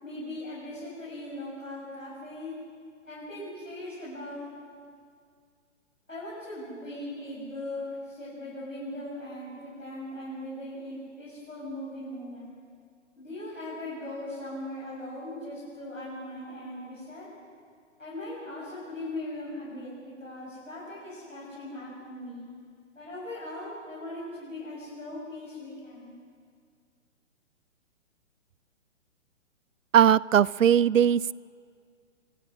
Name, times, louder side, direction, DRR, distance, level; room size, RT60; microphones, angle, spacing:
voice 1, 0.0-2.5 3.0-4.5 6.1-7.8 8.1-12.5 13.2-17.3 18.0-22.5 23.0-26.1, left 1 dB, 85° left, -7 dB, 7.5 m, -39 dB
voice 2, 29.9-31.3, right 9 dB, 80° right, 23 dB, 0.5 m, -20 dB
24.5 x 22.0 x 6.2 m, 2.1 s
figure-of-eight pair, 130°, 38 cm